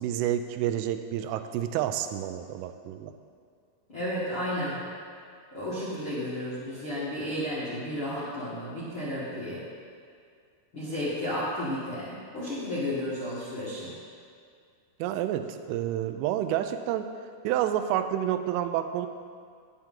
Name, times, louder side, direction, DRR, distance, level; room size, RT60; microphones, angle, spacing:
voice 1, 0.0-3.1 15.0-17.1 17.4-19.1, right 11 dB, 85° right, 9 dB, 3.0 m, -29 dB
voice 2, 3.9-4.8 5.5-9.6 10.7-13.9, left 1 dB, 70° left, -11 dB, 1.2 m, -32 dB
10.5 x 10.5 x 3.7 m, 2.2 s
omnidirectional pair, 5.7 m